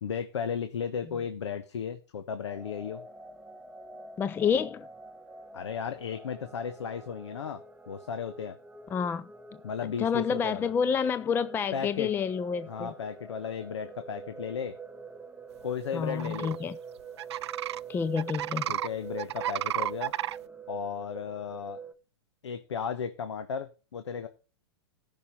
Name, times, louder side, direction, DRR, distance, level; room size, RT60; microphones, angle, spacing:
voice 1, 0.0-3.0 5.5-7.6 7.9-8.6 9.6-10.7 11.7-12.1 12.7-14.7 15.6-16.6 18.7-20.1 20.7-21.8 22.4-24.3, left 7 dB, 85° left, 1.2 m, -35 dB
sound 1, 2.4-21.9, right 5 dB, 10° right, 0.9 m, -45 dB
voice 2, 4.2-4.9 8.9-9.3 10.0-12.9 15.9-16.8 17.9-18.8, left 6 dB, 15° left, 0.5 m, -29 dB
sound 2, 16.1-16.6 17.2-17.8 18.2-18.9 19.2-20.4, right 12 dB, 75° right, 0.4 m, -32 dB
14.0 x 5.7 x 5.5 m
hypercardioid pair, 130°, 14 cm